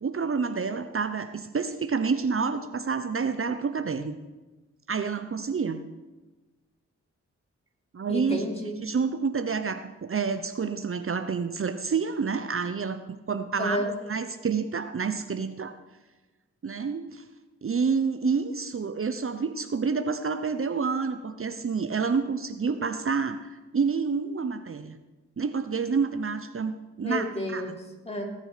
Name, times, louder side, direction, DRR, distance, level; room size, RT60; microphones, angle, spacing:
voice 1, 0.0-4.2 4.9-5.8 7.9-8.4 8.8-13.0 13.3-13.8 14.1-15.7 16.6-17.2 17.6-25.0 25.4-27.3 27.5-27.6, right 5 dB, 45° right, 9 dB, 0.9 m, -28 dB
voice 2, 8.1-8.8 13.6-13.9 27.0-28.2, equal, 20° left, 0 dB, 3.6 m, -31 dB
19.0 x 9.6 x 5.1 m, 1.1 s
cardioid pair, 60°, 29 cm